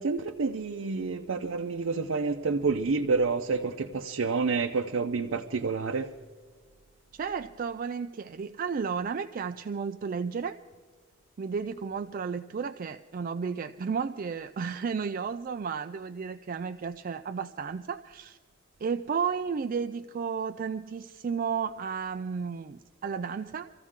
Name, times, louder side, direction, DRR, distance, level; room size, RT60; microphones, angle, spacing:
voice 1, 0.0-6.1, right 4 dB, 90° right, 0.6 m, -28 dB
voice 2, 7.1-10.6 11.4-18.4 18.8-23.7, right 6 dB, 45° right, 0.4 m, -33 dB
25.0 x 14.5 x 3.7 m
head